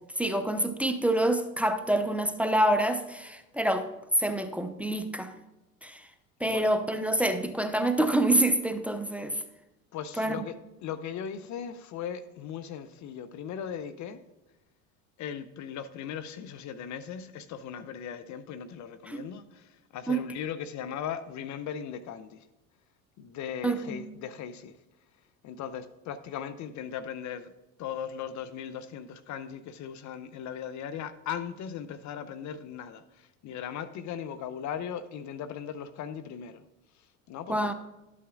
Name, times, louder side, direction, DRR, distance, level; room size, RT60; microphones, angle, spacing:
voice 1, 0.1-3.9 4.2-5.3 5.8-6.1 6.4-9.4 10.2-10.4 19.1-19.2 20.1-20.2 23.6-24.0 37.5-37.7, right 1 dB, 5° right, 9 dB, 0.7 m, -27 dB
voice 2, 6.4-6.7 9.9-10.6 10.8-14.2 15.2-22.5 23.2-24.8 25.4-27.5 27.8-36.6 36.9-37.7, left 8 dB, 45° left, 12 dB, 0.6 m, -38 dB
12.0 x 8.4 x 2.4 m, 0.97 s
hypercardioid pair, 70°, 41 cm